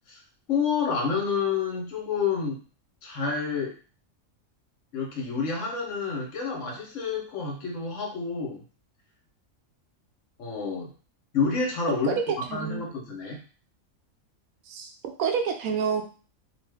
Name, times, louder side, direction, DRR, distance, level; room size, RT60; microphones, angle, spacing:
voice 1, 0.5-2.6 3.0-3.7 4.9-8.6 10.4-10.9 11.3-13.4, left 5 dB, 65° left, -1 dB, 1.2 m, -29 dB
voice 2, 12.0-12.8 14.7-14.9 15.2-16.0, right 6 dB, 85° right, 5 dB, 1.0 m, -28 dB
2.6 x 2.5 x 3.4 m, 0.38 s
omnidirectional pair, 1.5 m